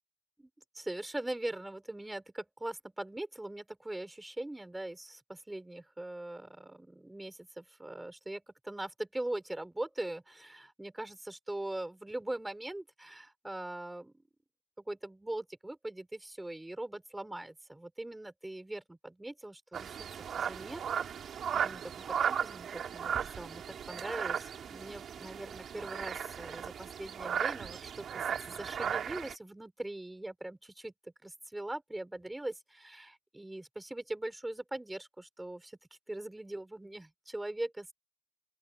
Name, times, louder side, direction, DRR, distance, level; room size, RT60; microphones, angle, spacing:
voice 1, 0.4-14.1 14.8-20.1 20.4-21.2 21.6-35.8 36.1-37.9, right 1 dB, 10° right, 5.0 m, -41 dB
sound 1, 19.7-29.3, right 8 dB, 45° right, 3.6 m, -36 dB
open air
cardioid pair, 145°, 0 cm